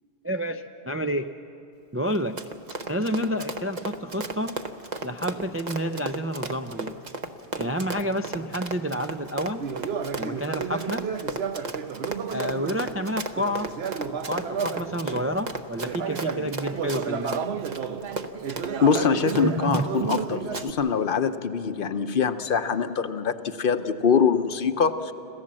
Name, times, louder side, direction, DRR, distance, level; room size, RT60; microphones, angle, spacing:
voice 1, 0.2-1.3 1.9-2.4 2.9-4.6 5.0-7.0 7.6-9.7 10.2-11.1 12.3-13.7 14.2-17.4 19.4-19.9, equal, 20° right, 7 dB, 0.3 m, -29 dB
Run, 2.1-20.2 20.5-20.7, right 3 dB, 45° right, 1.0 m, -34 dB
Conversation, 9.6-15.3 15.8-20.7, right 7 dB, 75° right, 1.0 m, -32 dB
voice 2, 18.8-25.1, left 6 dB, 60° left, 10 dB, 0.9 m, -24 dB
27.0 x 15.0 x 7.5 m, 2.8 s
omnidirectional pair, 1.1 m